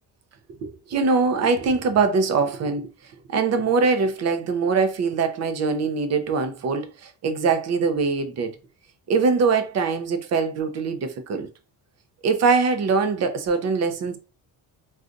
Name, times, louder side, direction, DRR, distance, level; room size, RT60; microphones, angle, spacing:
voice 1, 0.6-2.9 3.3-8.6 9.1-11.5 12.2-14.2, right 4 dB, 45° right, 0.6 m, -22 dB
3.7 x 2.4 x 2.5 m
cardioid pair, 140°, 38 cm